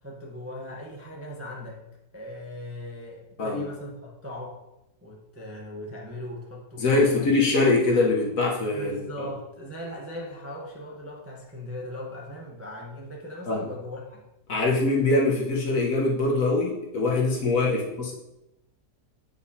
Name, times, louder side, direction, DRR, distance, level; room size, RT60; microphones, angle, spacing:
voice 1, 0.0-1.8 2.1-4.6 5.0-7.3 8.7-14.3 17.6-18.0, equal, 10° right, -3 dB, 0.7 m, -38 dB
voice 2, 3.4-3.7 6.8-9.3 13.5-13.6 14.5-18.1, left 3 dB, 55° left, -2 dB, 1.4 m, -23 dB
8.6 x 4.9 x 2.8 m, 0.91 s
omnidirectional pair, 1.8 m